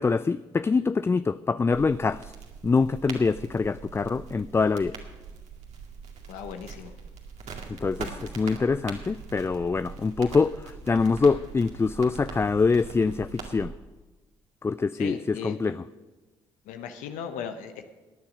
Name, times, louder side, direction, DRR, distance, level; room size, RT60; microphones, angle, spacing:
voice 1, 0.0-2.3 2.6-5.0 7.7-13.7 14.6-15.8, left 4 dB, 20° left, 15 dB, 0.3 m, -25 dB
sound 1, 1.7-13.6, right 5 dB, 55° right, 2.2 m, -42 dB
voice 2, 6.3-7.0 14.9-15.7 16.6-17.8, left 7 dB, 70° left, 8 dB, 0.9 m, -37 dB
17.0 x 9.8 x 5.2 m, 1.2 s
hypercardioid pair, 50°, 14 cm